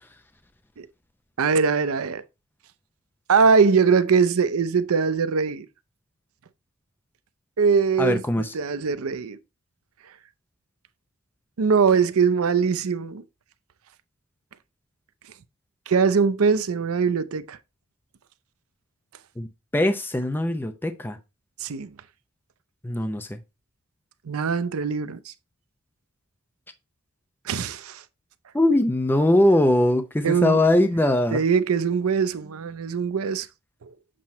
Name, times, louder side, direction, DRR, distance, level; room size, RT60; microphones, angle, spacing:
voice 1, 1.4-2.2 3.3-5.7 7.6-9.4 11.6-13.2 15.9-17.6 21.6-21.9 24.3-25.3 27.5-28.0 30.2-30.6 31.3-33.5, right 5 dB, 80° right, 0.5 m, -22 dB
voice 2, 8.0-8.5 19.4-19.5 19.7-21.2 22.8-23.4 28.5-31.4, left 1 dB, 10° left, 0.5 m, -21 dB
7.6 x 2.9 x 4.2 m
head